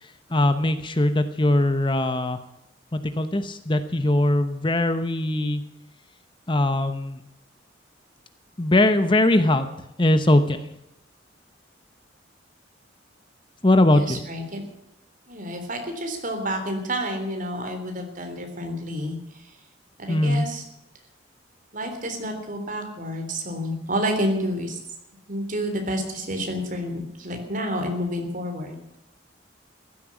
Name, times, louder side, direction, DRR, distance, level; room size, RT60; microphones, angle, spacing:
voice 1, 0.3-2.4 2.9-5.6 6.5-7.2 8.6-9.7 10.0-10.6 13.6-14.2 20.1-20.5, left 1 dB, 25° left, 10 dB, 0.9 m, -21 dB
voice 2, 13.9-14.6 15.3-19.5 20.0-20.6 21.7-24.8 25.3-28.8, equal, 40° right, 4 dB, 3.6 m, -29 dB
15.5 x 13.0 x 7.3 m, 0.87 s
head